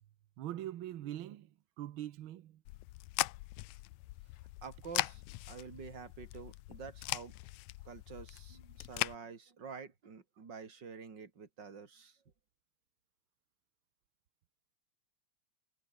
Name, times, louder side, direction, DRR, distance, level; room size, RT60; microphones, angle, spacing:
voice 1, 0.4-1.5 1.8-2.6, right 12 dB, 75° right, 1.1 m, -42 dB
sound 1, 2.7-9.2, left 19 dB, 80° left, 1.9 m, -40 dB
voice 2, 4.6-7.4 7.8-12.2, right 5 dB, 35° right, 3.1 m, -48 dB
omnidirectional pair, 3.4 m